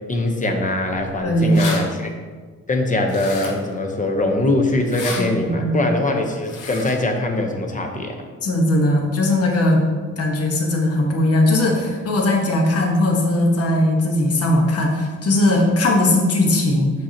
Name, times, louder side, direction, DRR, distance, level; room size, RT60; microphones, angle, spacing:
voice 1, 0.1-2.1 2.7-8.2, left 2 dB, 25° left, 3 dB, 0.8 m, -22 dB
voice 2, 1.2-1.6 5.2-5.8 8.4-9.8 10.2-16.9, left 1 dB, 50° left, 1 dB, 1.2 m, -19 dB
sound 1, 1.5-1.8 3.1-3.7 4.8-5.2 6.4-7.0, left 4 dB, 90° left, 1.0 m, -31 dB
6.0 x 5.7 x 2.9 m, 1.5 s
cardioid pair, 90°, 30 cm